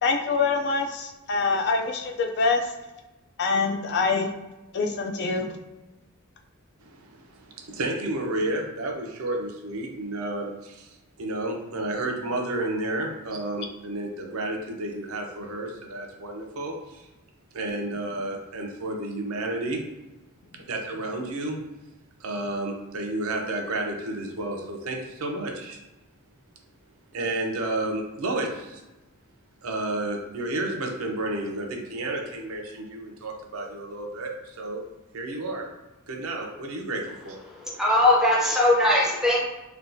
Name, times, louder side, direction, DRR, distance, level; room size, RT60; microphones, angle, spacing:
voice 1, 0.0-2.7 3.4-4.3 4.7-5.5, left 4 dB, 50° left, 3 dB, 0.4 m, -25 dB
voice 2, 6.8-10.9 11.2-17.1 17.5-19.8 20.7-21.6 22.2-25.8 27.1-28.8 29.6-34.8 35.1-35.6 36.1-37.4, right 2 dB, 80° right, 1 dB, 0.6 m, -31 dB
voice 3, 37.8-39.4, left 1 dB, ahead, -4 dB, 0.6 m, -20 dB
3.3 x 2.3 x 2.6 m, 1.0 s
head